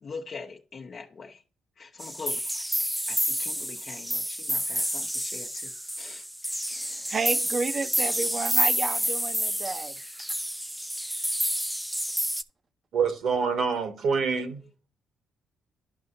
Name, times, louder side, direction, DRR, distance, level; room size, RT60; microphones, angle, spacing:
voice 1, 0.0-1.4 1.8-5.7 6.0-6.3, left 4 dB, 45° left, 0.7 m, -42 dB
sound 1, 2.0-12.4, equal, 5° right, 0.5 m, -29 dB
voice 2, 6.8-10.0, right 4 dB, 40° right, 0.7 m, -31 dB
voice 3, 12.9-14.6, right 5 dB, 65° right, 1.5 m, -26 dB
12.0 x 5.5 x 2.6 m
cardioid pair, 90°, 0 cm